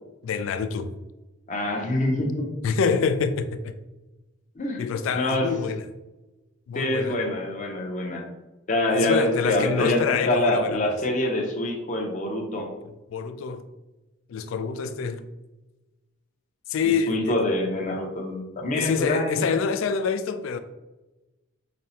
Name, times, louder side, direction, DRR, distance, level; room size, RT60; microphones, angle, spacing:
voice 1, 0.2-0.9 2.6-3.7 4.8-5.9 6.7-7.4 8.9-10.8 13.1-13.6 14.3-15.2 16.7-17.4 18.7-20.6, left 5 dB, 85° left, 0.3 m, -26 dB
voice 2, 1.5-2.5 4.6-4.8 5.1-5.5 6.7-8.2 8.7-10.0 10.3-12.7 16.8-19.4, left 1 dB, 40° left, 0.6 m, -25 dB
5.1 x 2.0 x 2.8 m
head